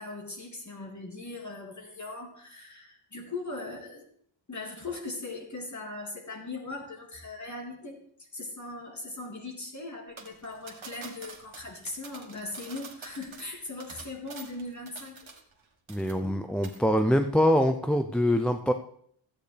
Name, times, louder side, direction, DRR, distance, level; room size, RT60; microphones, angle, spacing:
voice 1, 0.0-4.1 4.5-15.3, left 2 dB, 40° left, 1 dB, 2.2 m, -39 dB
sound 1, 10.2-15.6 15.9-16.4 16.6-16.8, right 5 dB, 90° right, 1.5 m, -47 dB
voice 2, 15.9-18.7, equal, ahead, 7 dB, 0.4 m, -24 dB
14.0 x 8.6 x 3.3 m, 0.63 s
wide cardioid pair, 140°, 46 cm